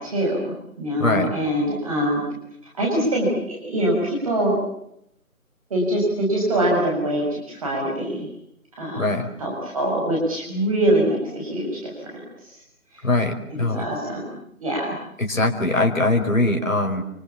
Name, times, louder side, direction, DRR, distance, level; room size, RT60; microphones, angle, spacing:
voice 1, 0.0-2.2 2.7-4.6 5.7-8.3 8.8-9.1 9.4-11.9 13.5-14.3 14.6-15.0, right 1 dB, 25° right, -2 dB, 6.4 m, -23 dB
voice 2, 1.0-1.3 9.0-9.3 13.0-13.9 15.2-17.0, left 2 dB, 65° left, 3 dB, 4.9 m, -21 dB
29.5 x 24.5 x 7.3 m, 0.77 s
figure-of-eight pair, 165°, 43 cm